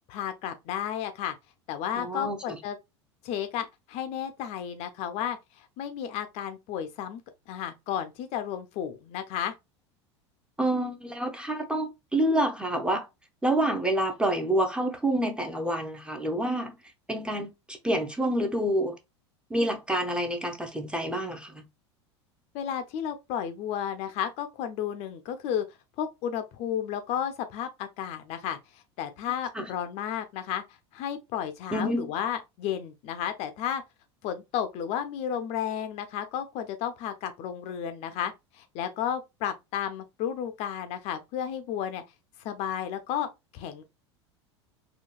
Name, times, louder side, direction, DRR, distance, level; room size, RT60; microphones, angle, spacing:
voice 1, 0.1-1.4 1.7-2.8 3.2-7.2 7.5-9.5 22.5-25.6 26.0-30.6 30.9-33.8 34.2-42.0 42.4-43.3 43.5-43.8, left 9 dB, 50° left, 0.5 m, -33 dB
voice 2, 1.9-2.6 10.6-13.1 13.4-16.8 17.1-19.0 19.5-21.6 29.5-29.7 31.7-32.1, right 1 dB, 5° right, 0.6 m, -28 dB
3.8 x 2.3 x 2.2 m
hypercardioid pair, 85°, 15 cm